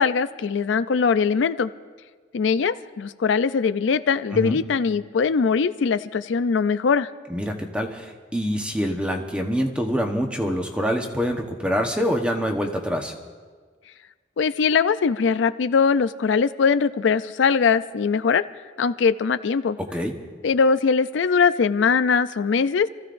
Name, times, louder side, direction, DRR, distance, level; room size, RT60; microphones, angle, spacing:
voice 1, 0.0-1.7 2.3-7.1 14.4-18.4 18.8-19.8 20.4-22.9, left 5 dB, 80° left, 13 dB, 0.4 m, -21 dB
voice 2, 7.3-13.1 19.9-20.1, equal, 5° right, 3 dB, 1.1 m, -25 dB
27.5 x 14.5 x 2.6 m, 1.5 s
head